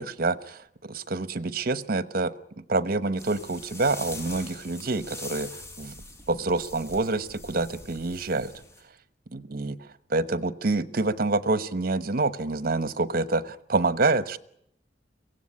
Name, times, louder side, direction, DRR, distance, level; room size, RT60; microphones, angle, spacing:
voice 1, 0.0-5.9 6.3-8.5 9.3-9.8 10.1-14.4, right 3 dB, 60° right, 15 dB, 1.1 m, -27 dB
sound 1, 3.2-8.8, left 1 dB, 15° left, 5.6 m, -43 dB
23.5 x 16.5 x 9.8 m, 0.74 s
head